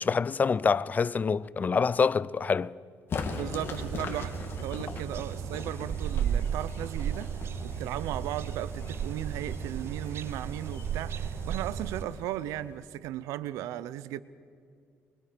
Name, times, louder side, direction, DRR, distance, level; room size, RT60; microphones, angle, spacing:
voice 1, 0.0-2.8, left 5 dB, 30° left, 0.4 m, -26 dB
sound 1, 3.1-12.9, left 4 dB, 45° left, 2.7 m, -41 dB
voice 2, 3.3-7.3 7.6-14.2, right 13 dB, 90° right, 0.7 m, -36 dB
sound 2, 3.7-12.0, right 9 dB, 50° right, 0.4 m, -34 dB
24.5 x 23.5 x 5.1 m
cardioid pair, 100°, 5 cm